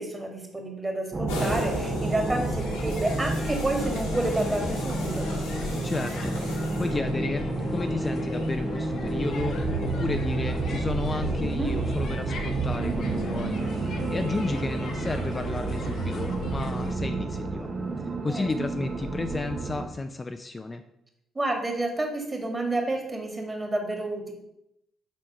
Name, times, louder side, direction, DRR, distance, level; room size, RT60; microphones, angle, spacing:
voice 1, 0.0-5.2 11.4-11.7 18.3-18.5 21.4-24.3, right 2 dB, 20° right, 3 dB, 1.9 m, -29 dB
sound 1, 1.1-19.9, right 3 dB, 40° right, 0.8 m, -30 dB
sound 2, 1.3-7.3, left 1 dB, 75° left, 1.5 m, -37 dB
sound 3, 2.2-16.9, left 4 dB, 55° left, 1.0 m, -38 dB
voice 2, 5.8-17.7 18.0-20.8, left 3 dB, 25° left, 7 dB, 0.4 m, -32 dB
6.0 x 4.4 x 5.4 m, 0.83 s
figure-of-eight pair, 45°, 0 cm